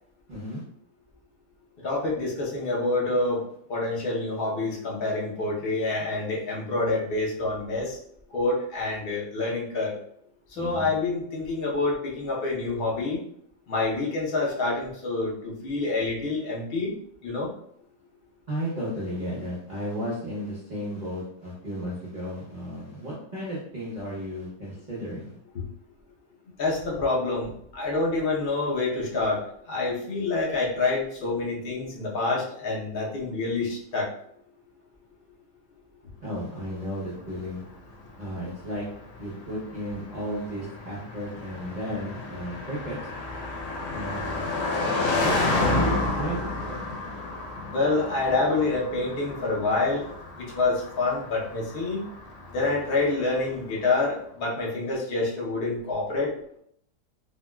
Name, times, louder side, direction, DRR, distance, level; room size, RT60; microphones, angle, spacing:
voice 1, 0.3-0.6 10.6-10.9 18.5-25.4 36.2-37.6 38.2-38.9 39.2-43.0 43.9-44.5 45.2-46.9, equal, 55° right, -6 dB, 0.5 m, -34 dB
voice 2, 1.8-8.0 8.3-10.0 10.5-13.2 13.7-16.9 17.2-17.5 25.5-25.6 26.6-29.4 29.7-34.1 47.7-50.1 50.3-52.0 52.5-56.3, left 3 dB, 55° left, -3 dB, 0.6 m, -27 dB
Car passing by, 37.1-53.6, left 2 dB, 90° left, 1.2 m, -31 dB
3.6 x 2.2 x 2.2 m, 0.70 s
omnidirectional pair, 1.8 m